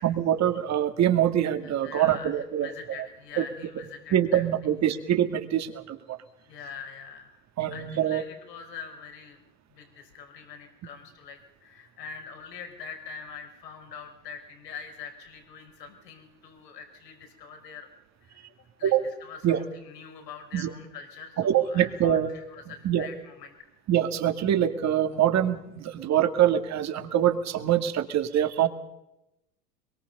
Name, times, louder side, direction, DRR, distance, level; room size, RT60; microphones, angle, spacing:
voice 1, 0.0-2.7 3.4-3.5 4.1-6.2 7.6-8.2 18.8-19.0 19.4-19.6 20.5-20.7 21.4-22.3 22.8-23.1 23.9-28.7, right 10 dB, 35° right, 8 dB, 2.3 m, -24 dB
voice 2, 1.5-4.4 6.4-7.4 7.7-9.4 9.7-17.9 18.2-23.7, left 6 dB, 75° left, 4 dB, 5.4 m, -44 dB
24.0 x 23.0 x 5.6 m, 0.90 s
hypercardioid pair, 95°, 49 cm